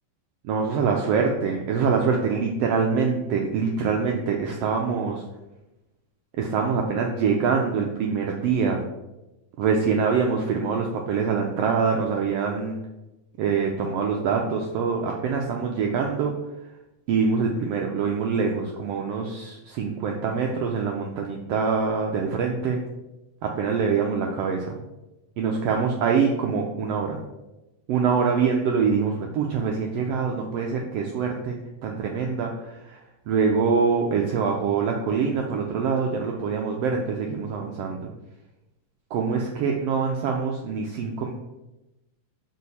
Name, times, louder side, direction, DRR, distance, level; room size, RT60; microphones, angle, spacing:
voice 1, 0.4-5.2 6.4-8.8 9.6-12.8 13.4-16.3 17.1-22.8 23.4-24.7 25.4-27.2 27.9-33.0 33.3-38.1 39.1-41.3, right 5 dB, 85° right, 1 dB, 1.3 m, -24 dB
6.4 x 4.6 x 4.1 m, 0.99 s
omnidirectional pair, 3.5 m